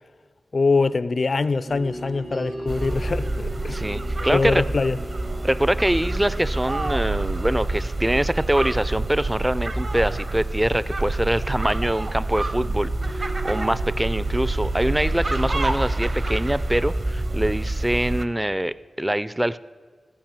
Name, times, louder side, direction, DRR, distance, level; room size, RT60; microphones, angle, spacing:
voice 1, 0.5-3.8 4.3-5.0, left 4 dB, 55° left, 0.4 m, -23 dB
sound 1, 1.7-17.6, right 1 dB, 75° right, 4.6 m, -40 dB
sound 2, 2.7-18.2, right 2 dB, 45° right, 0.7 m, -27 dB
voice 2, 3.7-4.6 5.4-19.6, right 1 dB, 10° right, 0.4 m, -24 dB
15.0 x 5.5 x 8.8 m
wide cardioid pair, 100°, 0 cm